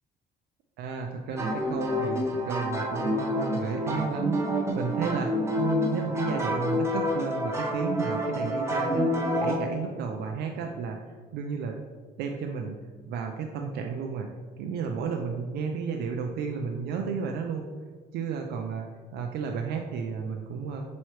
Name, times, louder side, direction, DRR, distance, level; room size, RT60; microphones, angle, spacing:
voice 1, 0.8-11.8 12.2-12.8 13.1-14.3 14.6-17.7 18.1-18.9 19.1-20.8, right 5 dB, 75° right, 2 dB, 0.4 m, -32 dB
sound 1, 1.4-9.6, equal, 15° right, 0.8 m, -28 dB
5.5 x 3.1 x 3.0 m, 1.5 s
cardioid pair, 110°, 17 cm